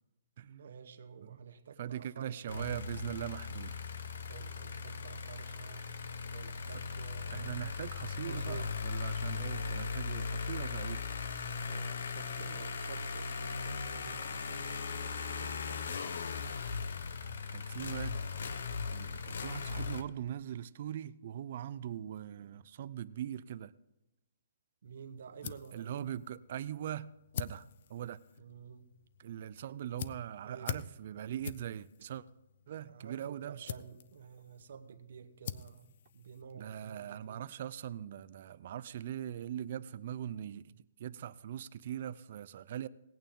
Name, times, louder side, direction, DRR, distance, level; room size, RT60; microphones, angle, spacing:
voice 1, 0.4-2.7 4.2-5.9 6.3-7.7 8.2-8.7 11.6-16.0 24.8-26.1 28.4-28.9 30.4-30.9 32.8-37.5, right 7 dB, 55° right, 0.9 m, -50 dB
voice 2, 1.8-3.8 6.7-6.8 7.3-11.0 17.5-18.5 18.9-23.7 25.4-28.2 29.2-32.2 32.7-33.7 36.5-42.9, right 10 dB, 40° right, 0.4 m, -41 dB
sound 1, 2.5-20.0, left 5 dB, 65° left, 0.8 m, -38 dB
sound 2, 24.8-37.0, left 9 dB, 40° left, 0.4 m, -47 dB
18.0 x 9.0 x 3.7 m
hypercardioid pair, 175°, 0 cm